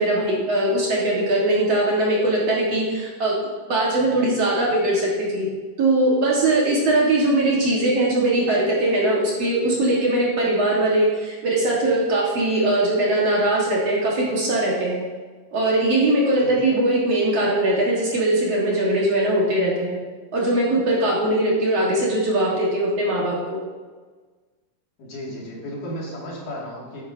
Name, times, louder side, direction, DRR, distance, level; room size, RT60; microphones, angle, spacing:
voice 1, 0.0-3.3 3.7-5.5 5.8-15.0 15.5-20.0 20.3-23.6, right 1 dB, 55° right, -4 dB, 2.3 m, -21 dB
voice 2, 16.4-16.7 25.0-27.0, equal, 70° left, -5 dB, 3.7 m, -34 dB
10.5 x 9.6 x 2.7 m, 1.4 s
omnidirectional pair, 4.0 m